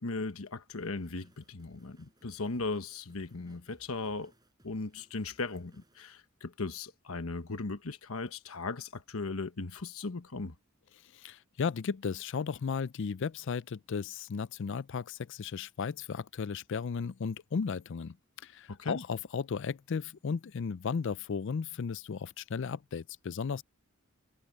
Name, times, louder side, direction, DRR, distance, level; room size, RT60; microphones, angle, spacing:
voice 1, 0.0-4.3 4.6-10.5 18.7-19.0, left 3 dB, 90° left, 1.2 m, -37 dB
sound 1, 0.8-6.0, right 1 dB, 20° right, 6.2 m, -65 dB
voice 2, 11.1-18.2 18.4-23.6, left 5 dB, 60° left, 0.4 m, -35 dB
head